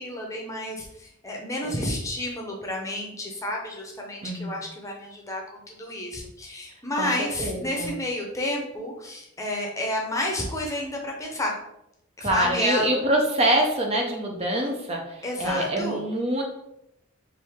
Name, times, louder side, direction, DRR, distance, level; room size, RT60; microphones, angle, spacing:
voice 1, 0.0-11.6 12.2-12.9 15.2-16.0, left 1 dB, 15° left, 0 dB, 0.7 m, -30 dB
voice 2, 4.2-4.6 7.0-7.1 7.4-7.9 12.2-16.4, right 1 dB, 30° right, 1 dB, 0.6 m, -25 dB
4.7 x 2.7 x 3.5 m, 0.79 s
head